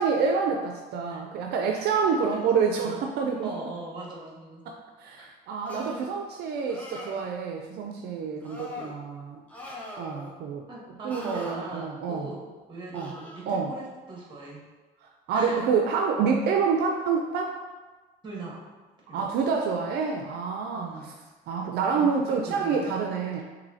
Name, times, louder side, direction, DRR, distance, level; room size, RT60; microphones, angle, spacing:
voice 1, 0.0-3.5 4.7-9.4 10.0-10.7 11.0-12.3 12.9-13.1 13.5-13.7 15.3-17.5 19.1-21.1 21.5-23.4, right 5 dB, 75° right, 2 dB, 0.4 m, -27 dB
voice 2, 3.4-4.6 5.2-5.3 8.8-8.9 10.7-14.6 15.3-15.8 18.2-18.6 19.1-19.3 20.7-21.1 21.9-22.9, right 2 dB, 25° right, -3 dB, 1.4 m, -40 dB
sound 1, 5.6-6.1 6.6-7.3 8.4-8.9 9.5-10.3 11.1-11.6 12.9-13.4, left 1 dB, 10° left, 0.8 m, -41 dB
5.9 x 2.7 x 2.7 m, 1.2 s
cardioid pair, 110°, 17 cm